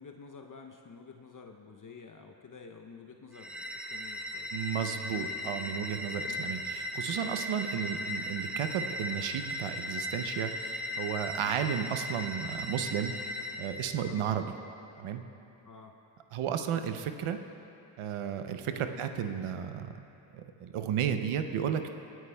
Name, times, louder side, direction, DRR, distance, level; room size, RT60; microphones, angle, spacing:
voice 1, 0.0-4.5 6.2-6.4 11.4-11.6 14.1-14.3 15.6-16.0 18.8-19.0, left 5 dB, 40° left, 3 dB, 0.7 m, -50 dB
sound 1, 3.3-13.9, left 1 dB, ahead, 0.6 m, -37 dB
voice 2, 4.5-13.1 13.6-14.5 15.0-15.2 16.3-17.4 18.0-19.9 20.3-21.9, right 8 dB, 80° right, 8 dB, 0.7 m, -33 dB
23.0 x 9.3 x 2.3 m, 2.8 s
cardioid pair, 50°, 49 cm